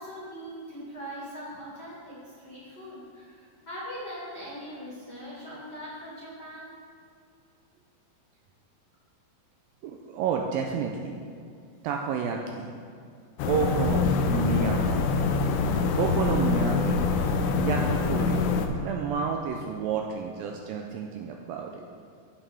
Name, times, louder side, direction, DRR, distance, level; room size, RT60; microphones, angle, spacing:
voice 1, 0.0-6.7, equal, 30° left, -8 dB, 2.4 m, -41 dB
voice 2, 9.8-11.2 11.8-12.7 13.4-15.0 15.9-17.1 17.6-18.5 18.8-21.8, right 6 dB, 80° right, 2 dB, 2.1 m, -30 dB
sound 1, 13.4-18.7, left 4 dB, 85° left, 1.9 m, -25 dB
15.5 x 5.8 x 3.5 m, 2.3 s
omnidirectional pair, 4.5 m